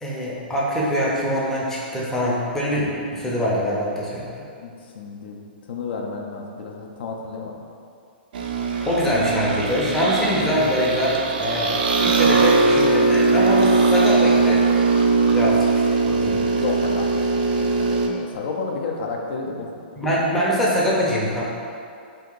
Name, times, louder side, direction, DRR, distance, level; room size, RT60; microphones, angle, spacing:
voice 1, 0.0-4.3 8.8-14.6 15.3-16.4 20.0-21.4, equal, 5° left, -7 dB, 0.5 m, -23 dB
voice 2, 4.6-7.6 16.5-19.7, left 4 dB, 65° left, 0 dB, 0.4 m, -31 dB
sound 1, 8.3-18.1, right 3 dB, 55° right, 0.3 m, -20 dB
2.8 x 2.7 x 3.7 m, 2.4 s
hypercardioid pair, 155°, 6 cm